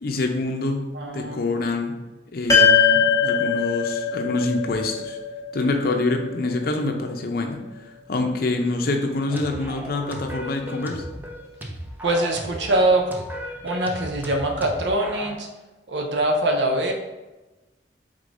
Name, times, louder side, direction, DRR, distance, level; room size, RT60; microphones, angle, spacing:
voice 1, 0.0-0.9 1.1-2.0 2.3-5.2 5.5-7.6 8.1-11.0, left 2 dB, 60° left, 4 dB, 0.6 m, -26 dB
voice 2, 0.9-1.4 12.0-13.2 13.6-15.5 15.9-16.9, right 1 dB, 80° right, 2 dB, 0.6 m, -23 dB
sound 1, 2.5-7.0, left 6 dB, 20° left, 1.3 m, -21 dB
sound 2, 9.3-15.4, right 1 dB, 10° right, 0.5 m, -36 dB
4.9 x 3.6 x 2.6 m, 1.1 s
head